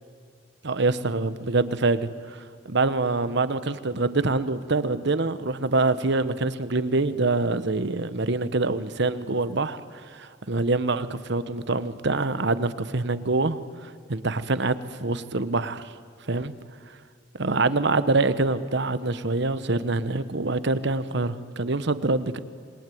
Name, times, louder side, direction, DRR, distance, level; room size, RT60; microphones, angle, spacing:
voice 1, 0.6-2.4 2.6-15.9 16.3-16.5 17.3-22.4, right 3 dB, 60° right, 13 dB, 1.1 m, -25 dB
27.5 x 22.0 x 9.4 m, 2.3 s
head